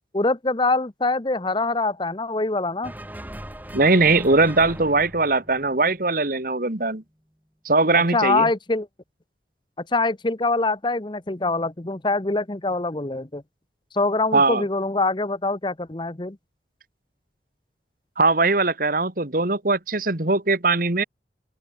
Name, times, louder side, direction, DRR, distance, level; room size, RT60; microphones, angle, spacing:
voice 1, 0.1-2.9 8.1-8.9 9.9-13.4 13.9-16.4, left 3 dB, 25° left, 0.9 m, -24 dB
sound 1, 2.8-6.3, right 1 dB, 10° right, 2.7 m, -39 dB
voice 2, 3.7-7.0 7.7-8.5 14.3-14.7 18.2-21.0, right 3 dB, 50° right, 1.9 m, -20 dB
open air
head